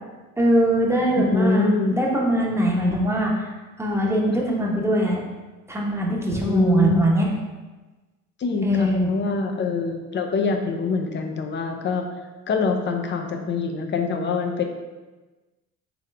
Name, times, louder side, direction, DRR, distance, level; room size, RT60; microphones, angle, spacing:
voice 1, 0.4-3.5 3.8-5.2 5.7-7.3 8.6-9.1, right 1 dB, 5° right, -3 dB, 0.9 m, -22 dB
voice 2, 1.3-2.0 6.3-7.0 8.4-12.1 12.5-14.6, left 4 dB, 30° left, 4 dB, 0.6 m, -24 dB
3.6 x 3.4 x 3.3 m, 1.2 s
hypercardioid pair, 70°, 40 cm